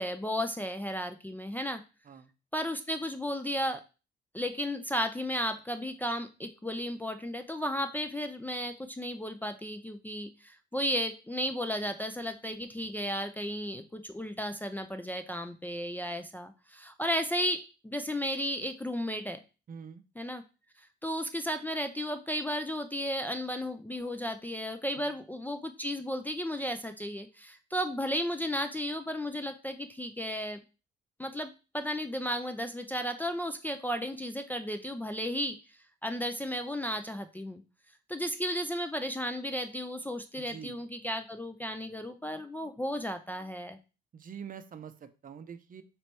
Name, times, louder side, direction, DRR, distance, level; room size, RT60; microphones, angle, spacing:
voice 1, 0.0-1.8 2.5-3.8 4.3-19.4 20.2-20.4 21.0-30.6 31.2-35.6 36.0-37.6 38.1-43.8, equal, 10° left, 6 dB, 0.3 m, -34 dB
voice 2, 19.7-20.0 25.0-25.1 40.4-40.8 44.1-45.8, right 7 dB, 45° right, 10 dB, 0.5 m, -45 dB
3.2 x 3.0 x 4.3 m, 0.32 s
cardioid pair, 90°, 20 cm